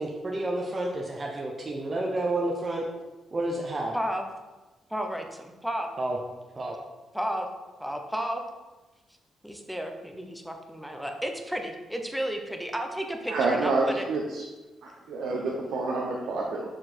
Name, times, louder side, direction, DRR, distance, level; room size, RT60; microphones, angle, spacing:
voice 1, 0.0-2.9 3.3-3.9 6.0-6.2 6.6-6.8, right 2 dB, 30° right, -1 dB, 0.8 m, -30 dB
voice 2, 3.9-4.2 4.9-5.9 7.1-7.5 7.8-8.4 9.4-14.1, equal, ahead, 3 dB, 0.8 m, -32 dB
voice 3, 13.3-14.4 14.8-16.7, right 3 dB, 80° right, -2 dB, 0.9 m, -28 dB
6.6 x 4.5 x 4.4 m, 1.2 s
cardioid pair, 105°, 0 cm